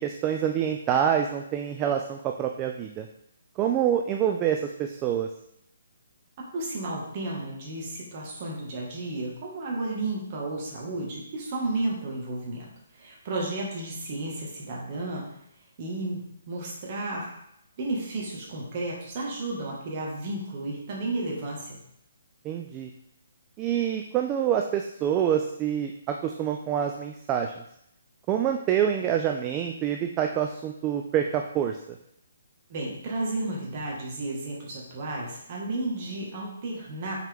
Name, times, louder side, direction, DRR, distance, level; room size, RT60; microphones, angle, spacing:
voice 1, 0.0-3.1 3.6-5.3 22.4-22.9 23.6-27.6 28.3-32.0, right 9 dB, 20° right, 4 dB, 0.3 m, -26 dB
voice 2, 6.5-15.3 15.8-17.3 17.8-21.8 32.7-37.2, right 2 dB, 35° right, -3 dB, 1.7 m, -33 dB
5.9 x 4.4 x 3.6 m, 0.76 s
hypercardioid pair, 165°, 0 cm